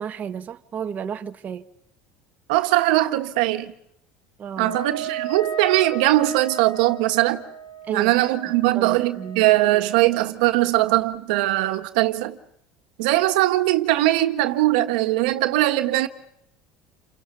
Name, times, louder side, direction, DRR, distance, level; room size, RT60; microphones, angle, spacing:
voice 1, 0.0-1.6 4.4-4.8 7.9-8.1 8.7-9.5, right 7 dB, 35° right, 1.2 m, -32 dB
voice 2, 2.5-3.7 4.6-7.4 7.9-12.4 13.0-16.1, right 17 dB, 85° right, 1.5 m, -20 dB
Wind instrument woodwind instrument, 4.5-10.2, right 5 dB, 85° left, 4.8 m, -35 dB
29.5 x 26.5 x 5.6 m
supercardioid pair, 105°, 4 cm